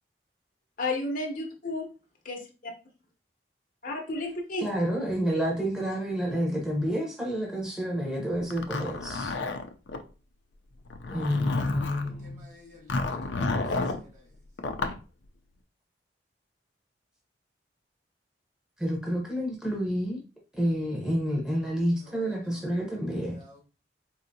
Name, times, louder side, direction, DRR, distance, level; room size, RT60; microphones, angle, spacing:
voice 1, 0.8-1.9 2.2-2.7 3.8-4.7 5.3-5.4, left 2 dB, 50° left, 0.8 m, -32 dB
voice 2, 4.6-9.3 11.1-12.4 18.8-20.2 20.6-23.4, equal, 5° right, 0.8 m, -29 dB
Zipper (clothing), 8.5-10.0 10.8-12.1 12.9-14.0 14.6-15.0, left 3 dB, 75° left, 0.5 m, -30 dB
voice 3, 11.9-13.1 13.9-14.2 22.0-22.5 23.2-23.6, left 1 dB, 40° right, 1.5 m, -53 dB
4.3 x 2.7 x 2.7 m
head